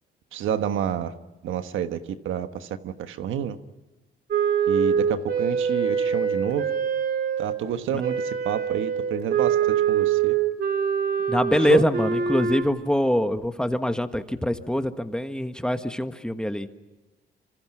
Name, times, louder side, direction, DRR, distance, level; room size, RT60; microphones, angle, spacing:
voice 1, 0.3-1.1 1.4-2.0 2.2-3.6 4.7-6.6 7.4-10.3 11.7-11.8, right 9 dB, 80° right, 9 dB, 1.3 m, -29 dB
Wind instrument woodwind instrument, 4.3-7.6 8.0-12.6, right 7 dB, 50° right, 3.3 m, -24 dB
voice 2, 11.3-16.7, equal, 5° left, 8 dB, 1.5 m, -24 dB
27.0 x 26.0 x 5.9 m, 1.1 s
cardioid pair, 90°, 20 cm